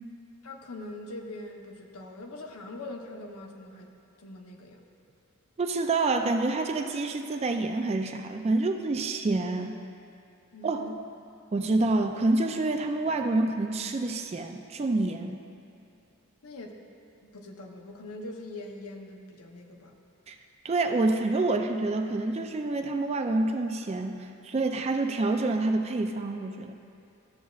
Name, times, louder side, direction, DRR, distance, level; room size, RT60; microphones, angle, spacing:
voice 1, 0.4-4.8 10.5-11.0 16.4-16.8 17.2-19.9, left 2 dB, 85° left, 2 dB, 0.8 m, -42 dB
voice 2, 5.6-9.8 10.6-10.9 11.5-15.4 20.3-20.4 20.6-26.7, right 2 dB, 30° right, 5 dB, 0.3 m, -27 dB
13.0 x 7.2 x 2.4 m, 2.7 s
head